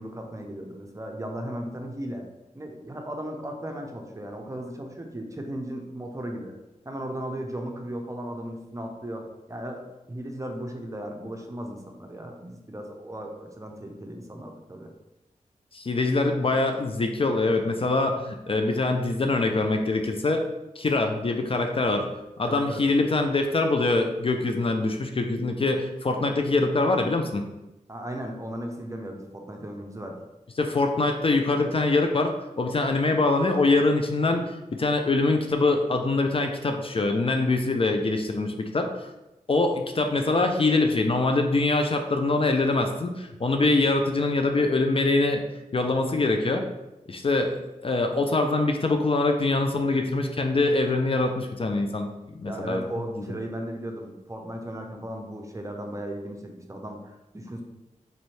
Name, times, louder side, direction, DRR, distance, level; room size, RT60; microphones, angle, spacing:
voice 1, 0.0-2.3 2.5-6.5 6.9-14.9 22.4-22.8 27.9-30.2 52.4-57.6, right 1 dB, 20° right, 2 dB, 0.6 m, -36 dB
voice 2, 15.7-20.4 20.8-22.1 22.4-27.4 30.6-39.1 39.5-45.4 45.7-46.6 47.1-52.8, left 2 dB, 40° left, 4 dB, 0.4 m, -24 dB
4.1 x 2.6 x 3.2 m, 0.99 s
cardioid pair, 55°, 14 cm